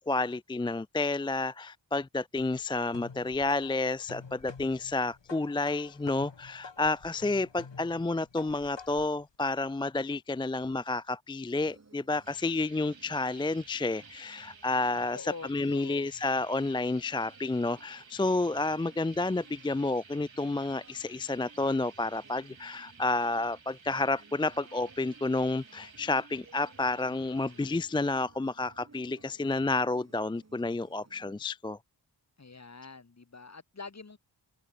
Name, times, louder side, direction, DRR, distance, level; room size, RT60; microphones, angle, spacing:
voice 1, 0.1-31.8, left 2 dB, 10° left, 0.3 m, -30 dB
sound 1, 2.3-9.2, left 5 dB, 70° left, 4.2 m, -49 dB
sound 2, 11.5-31.4, right 3 dB, 35° right, 2.0 m, -58 dB
sound 3, 12.2-27.7, right 5 dB, 85° right, 5.3 m, -55 dB
voice 2, 15.1-16.1 32.4-34.2, left 4 dB, 35° left, 1.7 m, -45 dB
open air
wide cardioid pair, 70°, 45 cm